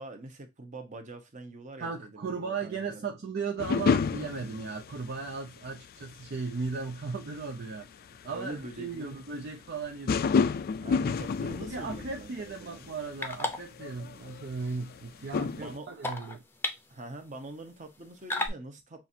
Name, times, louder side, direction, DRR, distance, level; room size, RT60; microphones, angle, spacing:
voice 1, 0.0-3.1 8.3-9.2 10.8-12.9 15.2-15.9 16.9-19.1, right 2 dB, 35° right, 0.9 m, -44 dB
voice 2, 1.8-7.9 8.2-10.2 11.7-16.4, right 4 dB, 50° right, 0.5 m, -36 dB
sound 1, 3.6-5.5 5.7-6.1 6.9-7.1 7.4-7.5 7.7-7.8 8.2-8.3 8.5-8.6 10.1-12.6 12.9-13.0 13.3-15.0 15.3-15.8, left 5 dB, 45° left, 0.3 m, -29 dB
sound 2, 11.1-18.5, left 2 dB, 10° left, 0.6 m, -40 dB
5.8 x 2.5 x 2.7 m
head